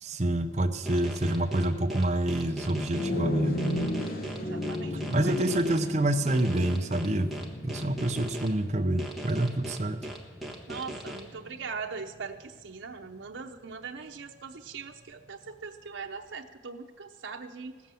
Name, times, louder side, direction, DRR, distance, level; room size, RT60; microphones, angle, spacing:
voice 1, 0.0-3.8 5.1-7.3 7.6-10.0, right 1 dB, 35° right, 8 dB, 0.7 m, -27 dB
sound 1, 0.9-3.1 3.6-5.8 6.3-8.5 9.0-11.2, right 1 dB, ahead, 1.3 m, -39 dB
sound 2, 2.9-12.5, left 2 dB, 50° left, 1.2 m, -36 dB
voice 2, 4.4-5.6 10.7-17.8, right 5 dB, 85° right, 4 dB, 0.8 m, -41 dB
16.0 x 7.1 x 7.6 m, 1.4 s
head